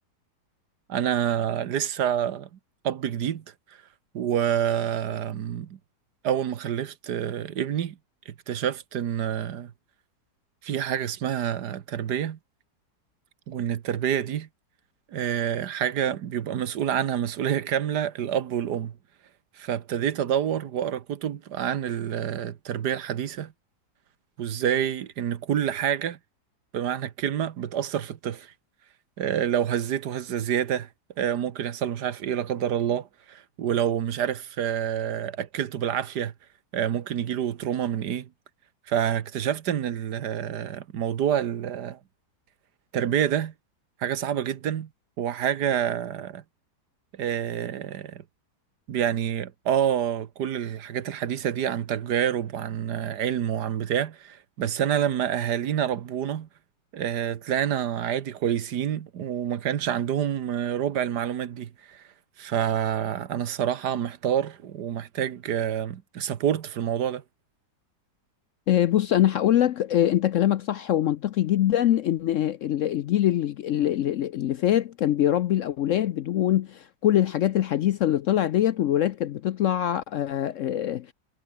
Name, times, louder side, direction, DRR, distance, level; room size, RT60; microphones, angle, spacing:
voice 1, 0.9-2.6 2.8-3.8 4.1-5.8 6.2-8.0 8.2-9.7 10.6-12.4 13.5-14.5 15.1-19.0 19.5-23.5 24.4-26.2 26.7-28.5 29.2-30.9 31.2-36.3 36.7-38.3 38.9-42.0 42.9-43.5 44.0-44.9 45.2-46.4 47.1-48.2 48.9-56.5 56.9-62.1 62.4-67.2, right 9 dB, 80° right, 1.7 m, -27 dB
voice 2, 68.7-81.1, left 12 dB, 65° left, 0.8 m, -23 dB
omnidirectional pair, 1.8 m